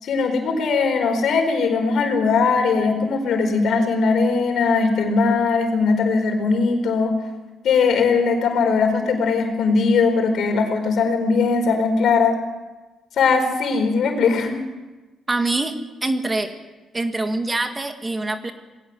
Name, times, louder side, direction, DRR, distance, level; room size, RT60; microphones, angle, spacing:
voice 1, 0.0-7.1 7.6-12.4 13.2-14.6, left 4 dB, 70° left, 4 dB, 4.6 m, -19 dB
voice 2, 15.3-16.5 16.9-18.5, right 2 dB, 20° right, 7 dB, 1.9 m, -24 dB
20.0 x 17.5 x 7.8 m, 1.2 s
cardioid pair, 90°, 0 cm